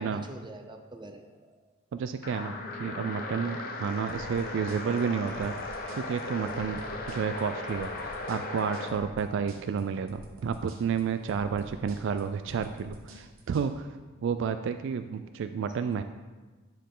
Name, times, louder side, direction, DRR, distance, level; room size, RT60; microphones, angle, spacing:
voice 1, 0.0-1.8, right 2 dB, 20° right, 5 dB, 0.6 m, -46 dB
voice 2, 1.9-5.5 6.0-6.8 7.1-13.9 14.2-16.0, right 6 dB, 60° right, 9 dB, 0.3 m, -31 dB
sound 1, 2.2-9.0, left 2 dB, 45° left, 0.9 m, -37 dB
sound 2, 4.1-13.7, equal, 85° right, 1.0 m, -49 dB
10.0 x 4.5 x 3.8 m, 1.3 s
head